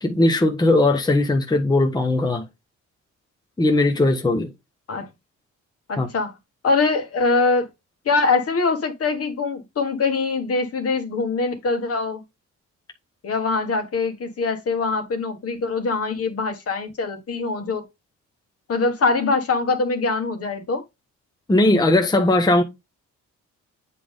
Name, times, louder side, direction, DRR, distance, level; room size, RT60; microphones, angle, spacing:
voice 1, 0.0-2.5 3.6-4.5 6.0-6.1 21.5-22.6, left 2 dB, 15° left, 0.9 m, -18 dB
voice 2, 5.9-6.3 6.6-7.7 8.0-12.2 13.2-17.8 18.7-20.8, left 4 dB, 50° left, 1.7 m, -23 dB
8.4 x 3.7 x 3.6 m
cardioid pair, 90°, 30 cm